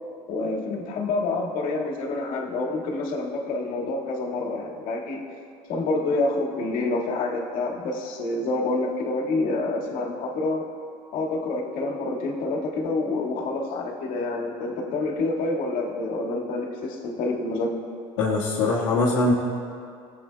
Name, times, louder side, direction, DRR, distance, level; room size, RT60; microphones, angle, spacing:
voice 1, 0.3-5.2 5.7-10.6 11.1-17.7, left 2 dB, 60° left, -2 dB, 1.8 m, -27 dB
voice 2, 18.2-19.3, left 2 dB, 75° left, -7 dB, 1.4 m, -22 dB
18.0 x 7.9 x 2.2 m, 2.4 s
hypercardioid pair, 80°, 16 cm